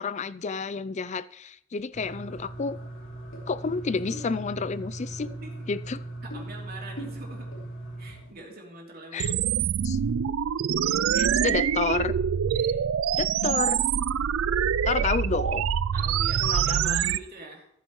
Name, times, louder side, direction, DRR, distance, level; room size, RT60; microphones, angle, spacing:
voice 1, 0.0-2.8 3.5-5.3 5.7-6.0 9.1-9.3 9.8-10.0 11.1-12.1 13.2-13.8 14.8-15.7 16.4-17.0, left 5 dB, 35° left, 17 dB, 0.4 m, -30 dB
sound 1, 1.9-8.3, right 1 dB, 65° left, 3.0 m, -39 dB
voice 2, 6.2-7.5 8.0-9.5 10.8-11.5 12.5-12.8 15.9-17.7, right 2 dB, 50° right, -1 dB, 3.0 m, -44 dB
sound 2, 9.2-17.2, right 8 dB, 80° right, 0.4 m, -25 dB
14.5 x 9.4 x 3.1 m, 0.72 s
head